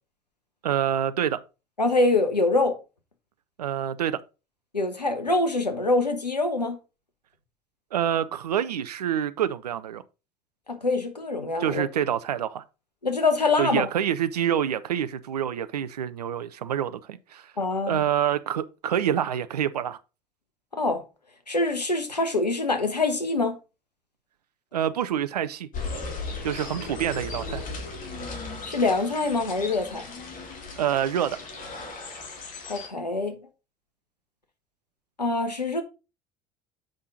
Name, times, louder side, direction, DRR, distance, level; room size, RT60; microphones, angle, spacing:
voice 1, 0.6-1.4 3.6-4.2 7.9-10.0 11.6-12.6 13.6-17.5 17.9-20.0 24.7-25.7 26.4-27.7 30.8-31.4, right 9 dB, 75° right, 0.6 m, -27 dB
voice 2, 1.8-2.7 4.7-6.8 10.7-11.8 13.0-13.9 17.6-18.0 20.7-21.0 21.5-23.6 28.7-30.0 32.7-33.4 35.2-35.8, left 2 dB, 85° left, 1.1 m, -24 dB
sound 1, 25.7-32.9, left 3 dB, 40° left, 2.4 m, -37 dB
7.7 x 5.5 x 3.8 m
figure-of-eight pair, 60°, 21 cm